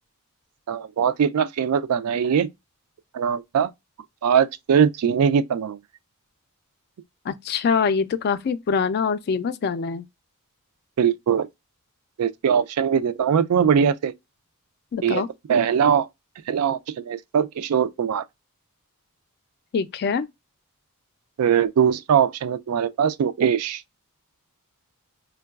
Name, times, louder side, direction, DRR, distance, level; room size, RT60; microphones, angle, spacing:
voice 1, 0.7-2.5 3.1-3.7 4.2-5.8 11.0-11.5 12.2-14.1 15.0-15.2 15.5-16.1 16.5-18.2 21.4-23.8, right 7 dB, 75° right, 0.3 m, -21 dB
voice 2, 7.3-10.0 14.9-15.3 19.7-20.3, left 5 dB, 45° left, 0.3 m, -24 dB
4.5 x 2.2 x 2.2 m
head